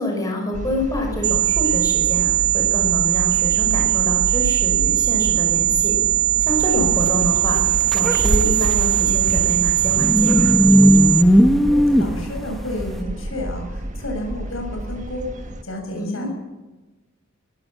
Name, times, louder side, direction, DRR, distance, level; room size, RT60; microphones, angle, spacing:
voice 1, 0.0-5.9 6.4-7.6 7.9-10.5 15.9-16.3, left 1 dB, 20° left, 0 dB, 6.1 m, -26 dB
sound 1, 0.5-15.6, right 1 dB, 40° right, 1.4 m, -31 dB
sound 2, 1.2-11.2, right 13 dB, 90° right, 0.6 m, -20 dB
sound 3, 6.5-13.0, equal, ahead, 1.2 m, -18 dB
voice 2, 11.7-16.3, left 1 dB, 85° left, 3 dB, 7.1 m, -31 dB
21.5 x 16.5 x 7.5 m, 1.1 s
head